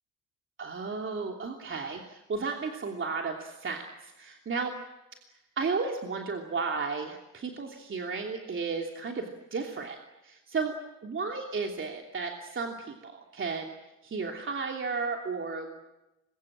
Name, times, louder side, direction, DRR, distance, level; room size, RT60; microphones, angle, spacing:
voice 1, 0.6-4.7 5.3-10.0 10.2-10.7 11.0-13.7 14.0-15.8, right 4 dB, 40° right, 2 dB, 3.0 m, -34 dB
26.0 x 23.0 x 8.8 m, 0.96 s
cardioid pair, 90°, 30 cm